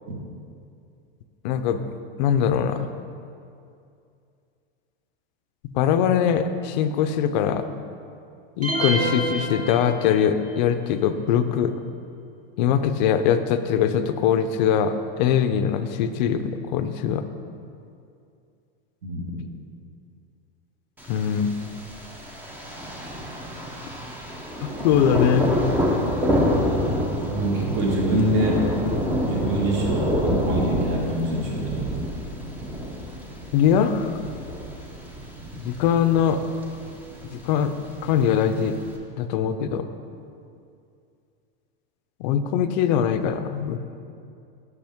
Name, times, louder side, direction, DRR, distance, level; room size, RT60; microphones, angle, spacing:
voice 1, 1.4-1.8 2.2-2.9 5.6-7.7 8.6-11.7 12.6-17.2 21.1-21.5 24.6-25.5 33.5-34.1 35.6-36.4 37.3-37.7 38.0-38.8 39.2-39.8 42.2-43.8, left 8 dB, 50° left, 10 dB, 0.5 m, -22 dB
sound 1, 8.6-10.4, right 1 dB, 25° right, 1.3 m, -27 dB
voice 2, 19.0-19.4 27.3-28.7 29.2-31.9, right 1 dB, 50° right, -2 dB, 1.8 m, -25 dB
Thunder, 21.0-39.0, equal, 5° right, 0.5 m, -28 dB
7.8 x 6.2 x 3.5 m, 2.5 s
supercardioid pair, 150°, 29 cm